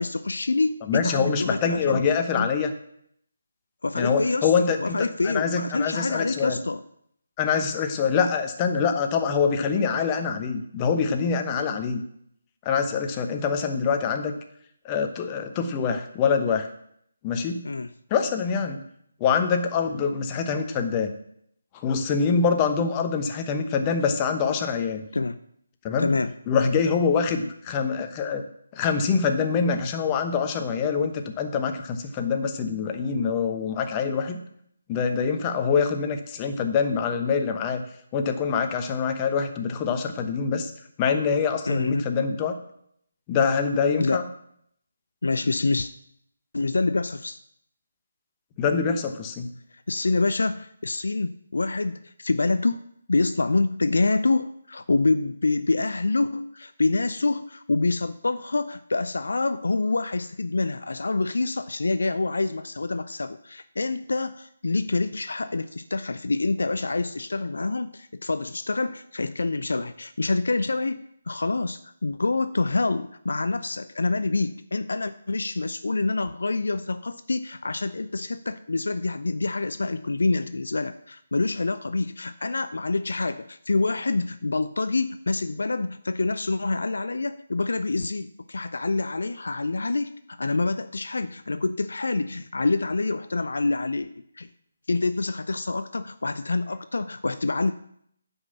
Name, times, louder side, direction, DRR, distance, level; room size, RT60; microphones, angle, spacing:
voice 1, 0.0-2.0 2.4-2.5 3.8-4.5 4.8-6.8 17.6-17.9 25.1-25.4 26.0-26.3 41.7-42.1 44.0-44.2 45.2-45.9 46.5-47.4 49.7-52.8 53.1-94.1 94.4-94.5 94.9-97.7, left 3 dB, 65° left, 11 dB, 0.5 m, -26 dB
voice 2, 0.9-2.7 4.0-6.6 7.4-12.0 12.6-14.3 14.8-16.7 17.2-17.7 18.1-18.8 19.2-21.1 21.8-25.0 25.8-26.1 26.5-28.4 28.7-34.4 34.9-37.8 38.1-40.7 41.0-42.5 43.3-44.2 48.6-49.5, left 6 dB, 20° left, 6 dB, 1.0 m, -25 dB
9.7 x 5.5 x 6.9 m, 0.71 s
figure-of-eight pair, 150°, 0 cm